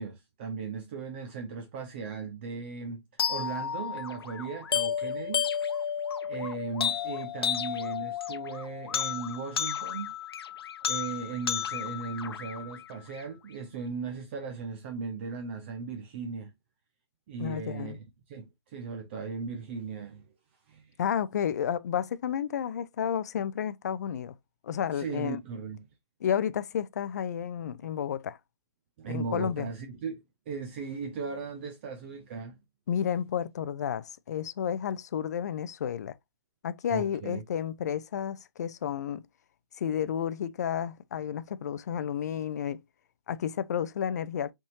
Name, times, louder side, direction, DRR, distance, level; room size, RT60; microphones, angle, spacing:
voice 1, 0.0-5.4 6.2-10.2 10.8-16.5 17.3-20.3 20.7-20.9 24.9-25.9 29.0-32.6 36.9-37.4, right 5 dB, 25° right, 0.5 m, -37 dB
sound 1, 3.2-13.2, left 8 dB, 60° left, 0.8 m, -32 dB
voice 2, 17.4-18.0 21.0-24.3 24.6-25.4 26.2-28.4 29.1-29.7 32.9-36.2 36.6-39.2 39.8-42.8 43.3-44.5, left 9 dB, 40° left, 0.4 m, -31 dB
5.3 x 3.6 x 2.7 m
hypercardioid pair, 155°, 14 cm